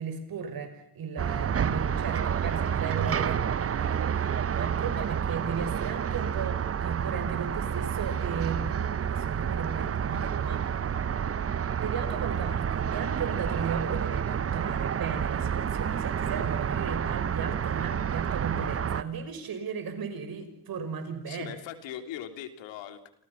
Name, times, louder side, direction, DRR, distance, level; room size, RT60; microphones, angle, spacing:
voice 1, 0.0-10.8 11.8-21.6, right 6 dB, 50° right, 8 dB, 5.9 m, -36 dB
sound 1, 1.2-19.0, right 8 dB, 30° right, 1.0 m, -29 dB
voice 2, 21.3-23.1, left 10 dB, 70° left, 7 dB, 3.2 m, -40 dB
29.0 x 27.5 x 5.8 m, 0.71 s
supercardioid pair, 85°, 46 cm